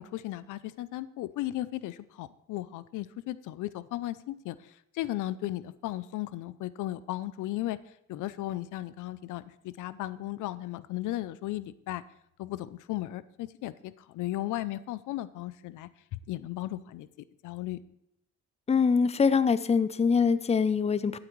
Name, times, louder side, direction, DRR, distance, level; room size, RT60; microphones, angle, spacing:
voice 1, 0.0-7.8 8.1-12.0 12.4-17.1 17.4-17.8, left 15 dB, 85° left, 16 dB, 0.5 m, -36 dB
voice 2, 18.7-21.2, left 5 dB, 20° left, 14 dB, 0.6 m, -24 dB
12.0 x 8.7 x 3.1 m, 0.79 s
cardioid pair, 90°, 30 cm